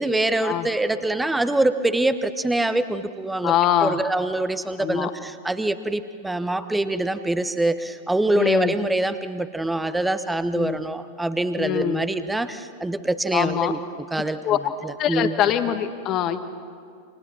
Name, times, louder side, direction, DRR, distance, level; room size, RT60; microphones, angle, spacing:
voice 1, 0.0-3.5 3.8-13.8 14.1-15.3, right 2 dB, 5° right, 11 dB, 1.1 m, -24 dB
voice 2, 3.4-4.0 4.8-5.1 8.3-8.7 10.5-10.8 11.6-12.0 13.3-13.7 14.4-14.6 15.0-16.4, left 11 dB, 35° left, 8 dB, 1.7 m, -23 dB
29.5 x 27.0 x 7.4 m, 2.2 s
figure-of-eight pair, 90°, 0 cm